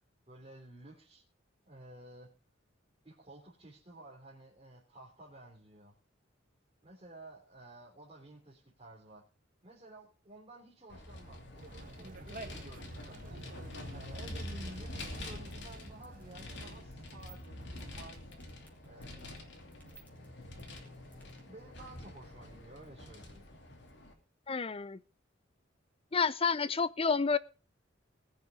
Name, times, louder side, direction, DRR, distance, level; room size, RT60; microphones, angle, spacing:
voice 1, 0.3-1.2 1.6-2.3 3.0-5.9 6.8-9.2 9.6-11.4 11.9-13.5 13.9-18.3 18.8-19.4 21.5-23.4, right 1 dB, 30° right, 3.2 m, -53 dB
Vehicle, 10.9-24.1, left 1 dB, 65° left, 2.8 m, -46 dB
Conversation, 11.6-16.8, right 2 dB, 45° right, 1.4 m, -50 dB
sound 1, 15.2-21.4, right 3 dB, 10° left, 4.1 m, -57 dB
voice 2, 24.5-25.0 26.1-27.4, left 5 dB, 30° left, 0.6 m, -29 dB
20.5 x 6.8 x 5.0 m
head